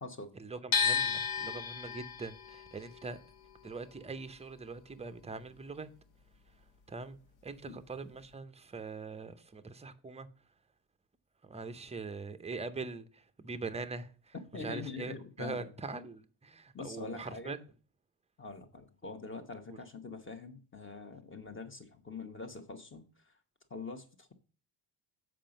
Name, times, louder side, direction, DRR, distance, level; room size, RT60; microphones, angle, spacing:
voice 1, 0.3-3.2 3.6-5.9 6.9-10.3 11.4-17.6 19.7-19.8, right 4 dB, 15° right, 0.6 m, -42 dB
sound 1, 0.7-6.7 7.0-8.3, left 6 dB, 65° left, 1.2 m, -35 dB
voice 2, 14.5-15.7 16.7-17.6 18.4-23.1 23.7-24.3, left 4 dB, 25° left, 1.0 m, -44 dB
7.5 x 4.9 x 5.2 m
cardioid pair, 130°, 50 cm